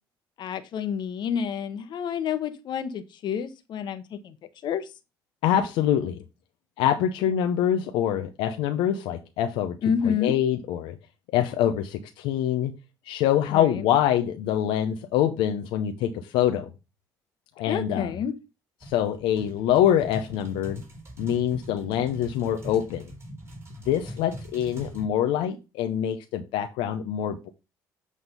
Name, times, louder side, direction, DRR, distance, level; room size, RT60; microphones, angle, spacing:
voice 1, 0.4-4.3 4.6-4.9 9.8-10.3 13.5-13.8 17.7-18.3, left 7 dB, 60° left, 11 dB, 1.0 m, -29 dB
voice 2, 5.4-6.2 6.8-9.8 10.0-11.0 11.3-12.7 13.1-16.7 17.6-18.1 18.8-20.8 21.2-23.1 23.9-27.5, left 10 dB, 80° left, 7 dB, 0.7 m, -25 dB
sound 1, 18.8-25.1, equal, 30° right, 3.7 m, -41 dB
8.2 x 3.6 x 5.5 m, 0.28 s
supercardioid pair, 75°, 9 cm